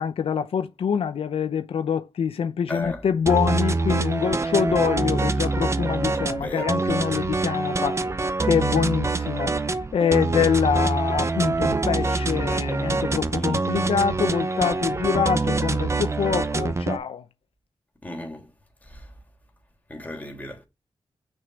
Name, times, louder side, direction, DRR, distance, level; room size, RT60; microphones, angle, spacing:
voice 1, 0.0-8.0 8.4-17.2, left 7 dB, 85° left, 0.8 m, -25 dB
voice 2, 2.7-3.0 6.3-6.7 13.3-13.6 18.0-18.5 18.8-19.1 19.9-20.6, left 1 dB, 15° left, 3.4 m, -35 dB
sound 1, 3.3-17.0, right 3 dB, 30° right, 0.7 m, -25 dB
6.4 x 5.5 x 7.0 m
wide cardioid pair, 90°, 10 cm